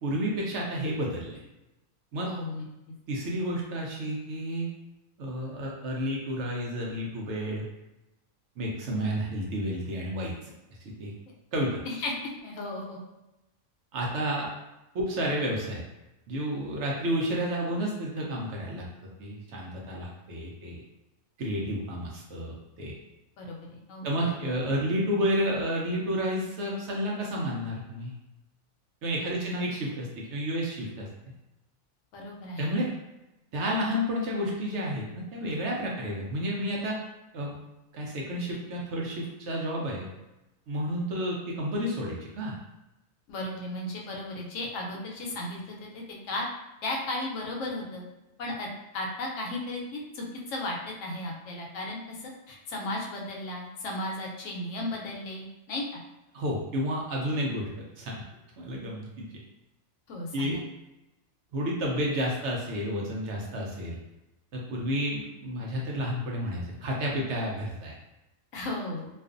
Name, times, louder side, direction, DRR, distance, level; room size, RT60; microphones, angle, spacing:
voice 1, 0.0-1.4 2.1-2.3 3.1-4.7 5.2-7.7 8.6-10.5 11.0-11.1 11.5-11.8 13.9-14.5 14.9-15.8 16.3-18.8 19.2-20.8 21.4-23.0 24.0-28.1 29.0-31.1 32.6-32.9 33.5-37.0 37.3-37.6 37.9-40.1 40.7-42.6 56.3-57.7 58.0-58.1 58.6-59.2 60.3-60.6 61.5-64.0 64.5-67.9, equal, 70° right, -2 dB, 0.8 m, -31 dB
voice 2, 2.2-2.9 11.8-13.0 23.4-24.1 29.2-29.7 32.1-32.8 43.3-46.5 46.8-48.0 48.4-48.7 48.9-56.0 60.1-60.7 68.5-69.1, left 1 dB, 75° left, -1 dB, 0.9 m, -35 dB
2.5 x 2.3 x 2.4 m, 0.94 s
omnidirectional pair, 1.4 m